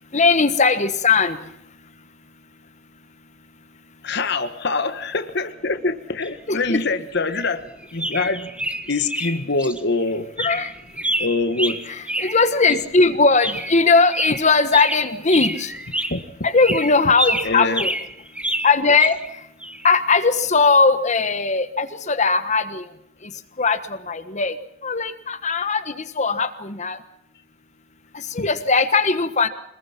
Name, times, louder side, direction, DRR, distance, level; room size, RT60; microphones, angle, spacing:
voice 1, 0.1-1.4 6.5-6.8 10.4-10.7 11.9-15.7 16.4-17.9 18.6-19.2 19.8-22.8 23.6-23.8 24.1-24.5 24.8-27.0 28.3-29.5, left 4 dB, 35° left, 10 dB, 1.3 m, -19 dB
voice 2, 4.0-8.5 8.9-10.3 11.2-11.8 16.1-16.2 17.4-17.8 28.4-28.5, left 3 dB, 55° left, 9 dB, 1.4 m, -24 dB
sound 1, 6.2-6.3 7.3-7.5 7.8-9.8 10.1-10.2 10.4-12.8 13.4-13.8 14.1-16.2 16.6-19.3 19.6-19.9, right 1 dB, 5° right, 1.3 m, -28 dB
25.5 x 21.0 x 5.9 m, 0.78 s
head